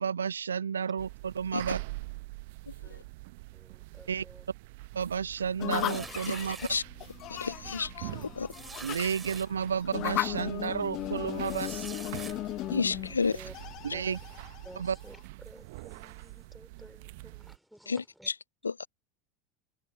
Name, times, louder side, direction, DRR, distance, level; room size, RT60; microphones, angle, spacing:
voice 1, 0.0-1.8 4.1-4.2 4.9-6.6 8.8-12.0 13.8-14.2 14.8-15.0, right 7 dB, 75° right, 0.3 m, -32 dB
sound 1, 1.0-17.6, right 23 dB, 55° right, 1.0 m, -45 dB
voice 2, 3.5-4.5 8.0-8.6 13.0-13.5 13.9-14.2 14.6-18.3, equal, ahead, 3.9 m, -53 dB
sound 2, 5.6-15.2, left 16 dB, 40° left, 1.0 m, -37 dB
sound 3, 5.7-6.8 7.4-7.6 7.8-7.9 8.5-9.5 10.1-10.2 11.4-12.3, right 5 dB, 20° right, 5.6 m, -45 dB
voice 3, 7.3-8.5 12.7-13.3 17.9-18.0 18.6-18.9, left 5 dB, 80° left, 0.4 m, -30 dB
figure-of-eight pair, 80°, 0 cm